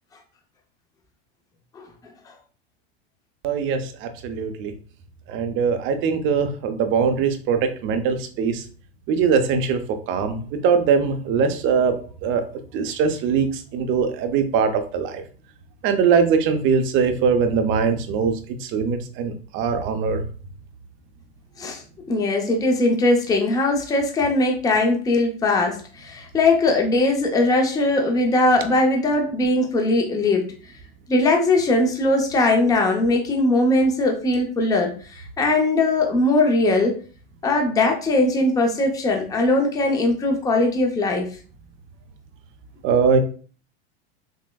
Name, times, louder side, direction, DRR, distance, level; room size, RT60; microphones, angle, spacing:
voice 1, 3.4-4.7 5.3-8.6 9.1-9.8 10.1-12.0 12.2-12.4 12.7-15.2 15.8-20.2 42.8-43.2, right 6 dB, 40° right, 8 dB, 0.6 m, -21 dB
voice 2, 22.1-30.5 31.1-37.0 37.4-41.3, left 2 dB, 10° left, 2 dB, 0.5 m, -20 dB
6.1 x 2.1 x 2.3 m, 0.40 s
supercardioid pair, 125°, 32 cm